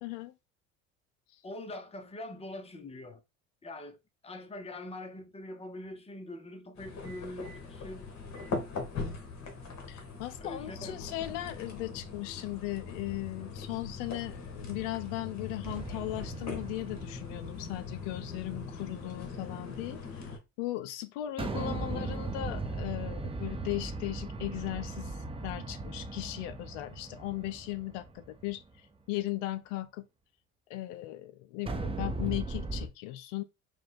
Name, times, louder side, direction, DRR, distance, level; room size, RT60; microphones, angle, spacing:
voice 1, 0.0-0.3 1.3-1.4 9.9-20.3 20.6-30.1 30.7-33.4, left 16 dB, 70° left, 0.5 m, -37 dB
voice 2, 1.4-3.2 3.6-4.0 4.2-8.1 10.4-11.1 21.8-22.2, left 1 dB, 15° left, 0.8 m, -43 dB
sound 1, 6.8-20.4, left 4 dB, 45° left, 1.5 m, -41 dB
sound 2, 15.6-18.2 21.4-28.6 31.7-32.9, right 3 dB, 15° right, 0.8 m, -38 dB
4.8 x 2.3 x 3.7 m
hypercardioid pair, 70°, 39 cm